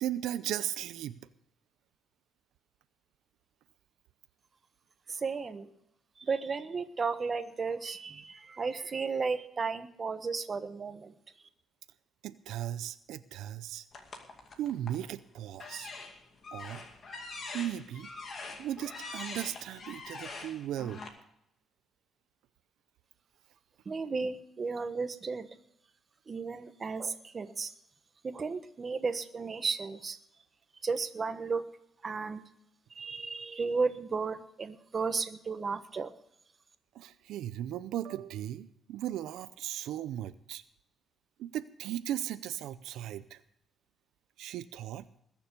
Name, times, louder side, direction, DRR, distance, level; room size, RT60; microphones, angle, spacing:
voice 1, 0.0-1.2 12.2-13.9 14.6-15.9 16.5-16.8 17.5-18.1 18.6-21.0 36.9-40.6 41.4-43.4 44.4-45.1, right 12 dB, 90° right, 13 dB, 0.6 m, -37 dB
voice 2, 5.1-5.7 6.2-11.1 23.8-25.5 26.3-27.7 28.2-30.2 30.8-31.6 32.0-32.4 32.9-36.1, right 4 dB, 30° right, 9 dB, 1.2 m, -34 dB
sound 1, 13.9-15.1 15.5-21.1, left 3 dB, 45° left, 2.4 m, -44 dB
20.5 x 7.0 x 6.8 m, 0.78 s
cardioid pair, 125°, 0 cm